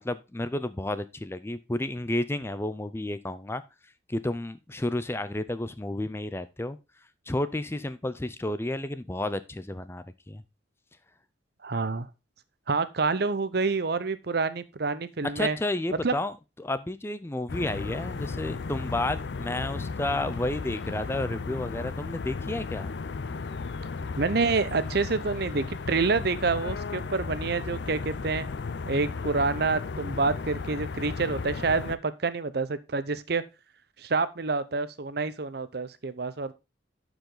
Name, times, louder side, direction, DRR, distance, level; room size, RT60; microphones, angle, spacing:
voice 1, 0.0-3.6 4.1-6.8 7.3-10.4 15.2-22.9, left 1 dB, 15° left, 14 dB, 0.5 m, -31 dB
voice 2, 11.6-12.1 12.7-15.6 16.0-16.1 24.2-28.5 28.8-33.4 34.0-36.5, right 4 dB, 55° right, 14 dB, 0.7 m, -27 dB
sound 1, 17.5-32.0, left 4 dB, 65° left, 0.5 m, -35 dB
11.5 x 4.9 x 3.8 m, 0.27 s
head